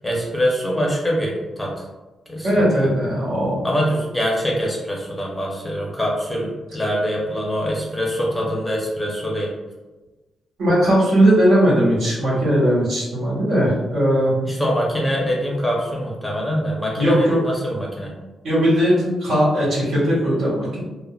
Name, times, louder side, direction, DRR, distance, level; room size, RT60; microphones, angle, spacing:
voice 1, 0.0-1.9 2.3-2.7 3.6-9.5 12.3-12.4 14.4-18.1, equal, 5° left, -4 dB, 0.6 m, -24 dB
voice 2, 2.4-3.5 10.6-14.3 17.0-17.4 18.4-20.8, equal, 80° right, -7 dB, 1.4 m, -18 dB
3.5 x 2.0 x 2.3 m, 1.2 s
wide cardioid pair, 165°, 0 cm